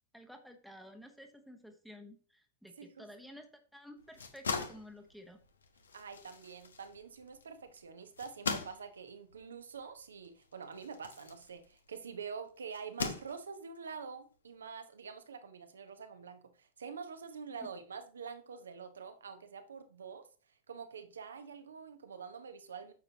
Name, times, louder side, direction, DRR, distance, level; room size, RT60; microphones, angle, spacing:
voice 1, 0.1-5.4, equal, ahead, 1.2 m, -53 dB
sound 1, 4.0-12.1 12.7-13.8, left 5 dB, 70° left, 1.1 m, -41 dB
voice 2, 5.9-20.3 20.7-22.9, right 6 dB, 70° right, 1.1 m, -46 dB
9.4 x 6.7 x 2.9 m
figure-of-eight pair, 90°, 0 cm